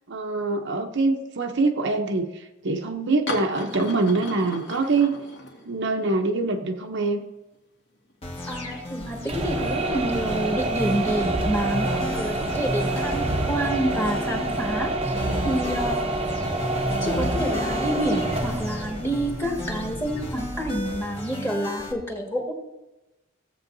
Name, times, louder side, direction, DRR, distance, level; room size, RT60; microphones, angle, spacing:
voice 1, 0.1-5.2 5.7-7.2, right 3 dB, 60° right, 4 dB, 0.8 m, -24 dB
sound 1, 3.3-6.1 6.4-6.5 7.5-7.6 7.9-8.7 9.2-9.3 10.8-12.1 12.7-13.0 14.1-14.7, left 1 dB, 65° left, 2.1 m, -37 dB
sound 2, 8.2-21.9, left 1 dB, 30° left, 1.5 m, -34 dB
voice 2, 8.5-16.0 17.0-22.5, right 1 dB, 10° left, 0 dB, 1.8 m, -28 dB
sound 3, 9.2-21.1, right 2 dB, 30° right, 0.8 m, -28 dB
16.5 x 7.7 x 2.7 m, 0.98 s
head